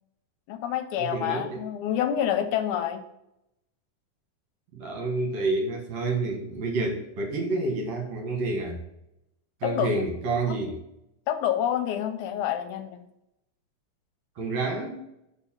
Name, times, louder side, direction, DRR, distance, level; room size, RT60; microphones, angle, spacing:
voice 1, 0.5-3.0 9.6-9.9 11.3-13.0, left 10 dB, 80° left, 8 dB, 2.0 m, -27 dB
voice 2, 1.0-1.6 4.7-8.8 9.6-10.8 14.4-15.0, right 3 dB, 65° right, 1 dB, 2.4 m, -29 dB
5.4 x 4.6 x 5.6 m, 0.85 s
omnidirectional pair, 3.6 m